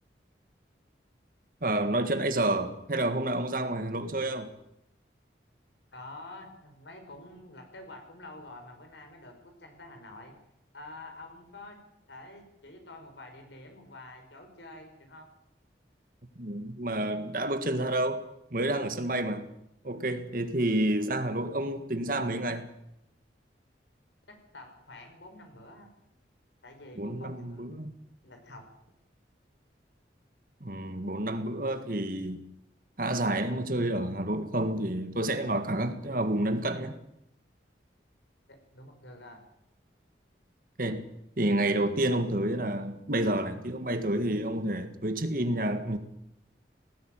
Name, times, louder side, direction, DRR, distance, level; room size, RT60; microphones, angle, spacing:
voice 1, 1.6-4.5 16.4-18.2 18.5-19.5 19.8-22.7 27.0-27.9 30.6-32.5 33.0-37.0 40.8-41.0 41.4-46.0, right 1 dB, 50° right, 1.8 m, -29 dB
voice 2, 5.9-10.4 10.7-11.8 12.1-15.3 24.3-25.9 26.6-27.7 28.2-28.7 38.5-39.4, left 2 dB, 85° left, 5.3 m, -48 dB
18.5 x 16.0 x 9.1 m
head